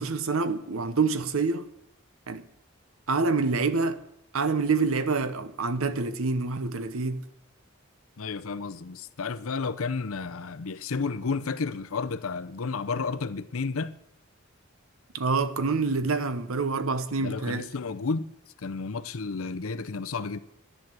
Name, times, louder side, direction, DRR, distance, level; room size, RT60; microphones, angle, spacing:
voice 1, 0.0-1.6 2.3-2.4 3.1-4.0 4.3-7.2 15.1-17.7, right 4 dB, 80° right, 0.9 m, -26 dB
voice 2, 8.2-13.9 17.2-18.3 18.6-20.4, left 4 dB, 80° left, 0.7 m, -32 dB
11.0 x 10.5 x 7.6 m
head